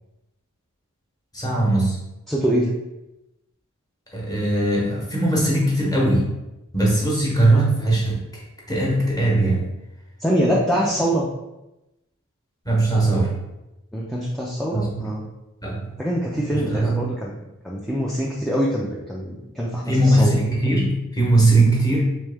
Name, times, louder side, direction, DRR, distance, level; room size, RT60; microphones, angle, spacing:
voice 1, 1.3-2.0 4.1-6.3 6.7-8.4 8.7-9.6 12.6-13.3 14.7-15.1 15.6-15.9 16.5-17.0 19.9-22.0, right 2 dB, 15° left, -4 dB, 1.0 m, -20 dB
voice 2, 2.3-2.7 10.2-11.3 13.9-15.3 16.0-17.3 17.6-20.4, equal, ahead, -5 dB, 0.3 m, -24 dB
3.6 x 3.1 x 3.4 m, 0.96 s
head